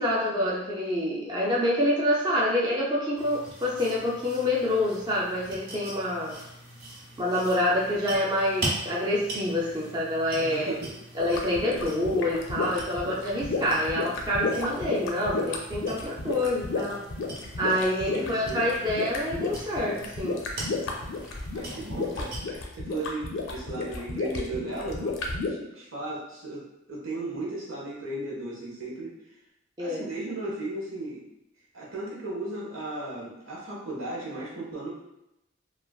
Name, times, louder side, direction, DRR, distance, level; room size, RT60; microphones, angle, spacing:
voice 1, 0.0-6.4 7.2-10.7 11.2-17.0 17.6-20.4 29.8-30.0, left 1 dB, 20° right, -5 dB, 0.4 m, -27 dB
sound 1, 3.2-22.4, right 2 dB, 55° right, 0.8 m, -41 dB
voice 2, 10.4-10.9 18.1-18.6 21.5-29.2 29.8-31.2 31.7-34.9, right 2 dB, 90° right, -5 dB, 1.0 m, -35 dB
sound 2, 11.2-25.5, left 3 dB, 70° left, 0.5 m, -32 dB
3.2 x 2.3 x 2.3 m, 0.85 s
head